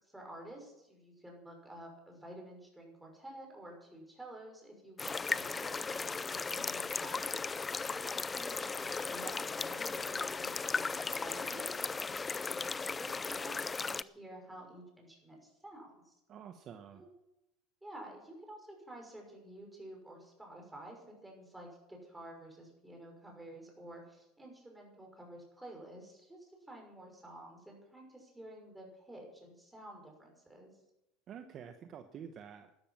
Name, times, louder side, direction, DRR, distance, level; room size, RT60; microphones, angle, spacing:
voice 1, 0.0-7.4 7.9-16.1 16.9-17.1 17.8-30.7, right 1 dB, 5° right, 0 dB, 5.9 m, -51 dB
sound 1, 5.0-14.0, left 4 dB, 15° left, 0.4 m, -36 dB
voice 2, 16.3-17.0 31.3-32.7, right 8 dB, 40° right, 7 dB, 1.1 m, -48 dB
13.0 x 12.5 x 7.5 m, 0.88 s
supercardioid pair, 135°, 0 cm